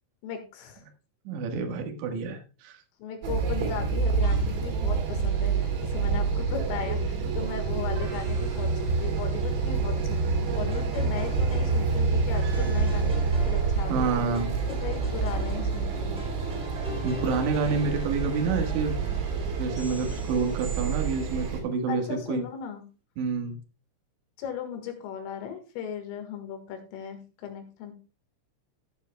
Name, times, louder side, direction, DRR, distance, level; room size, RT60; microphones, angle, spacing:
voice 1, 0.2-0.9 3.0-14.2 14.7-16.2 21.9-22.8 24.4-27.9, left 7 dB, 75° left, 6 dB, 4.1 m, -37 dB
voice 2, 1.2-2.8 13.9-14.6 17.0-19.0 19.6-22.4 23.2-23.6, right 4 dB, 65° right, 4 dB, 3.4 m, -28 dB
sound 1, 3.2-21.6, right 4 dB, 85° right, 5.3 m, -27 dB
sound 2, 4.2-4.8 8.0-9.7 12.3-13.8 16.8-18.2 19.7-21.5, right 3 dB, 50° right, 4.9 m, -49 dB
sound 3, 10.7-21.0, left 3 dB, ahead, 1.5 m, -45 dB
16.0 x 9.2 x 2.2 m, 0.32 s
omnidirectional pair, 5.9 m